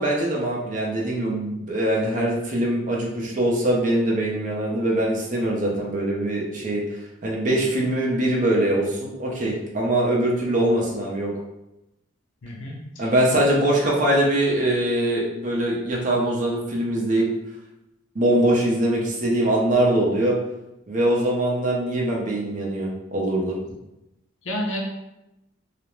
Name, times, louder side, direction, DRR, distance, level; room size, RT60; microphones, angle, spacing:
voice 1, 0.0-6.8 7.2-11.3 13.0-17.3 18.1-20.4 20.9-23.6, right 1 dB, 40° right, -3 dB, 0.5 m, -22 dB
voice 2, 12.4-13.1 24.4-24.8, equal, 80° left, -1 dB, 0.6 m, -30 dB
2.4 x 2.1 x 3.0 m, 0.91 s
head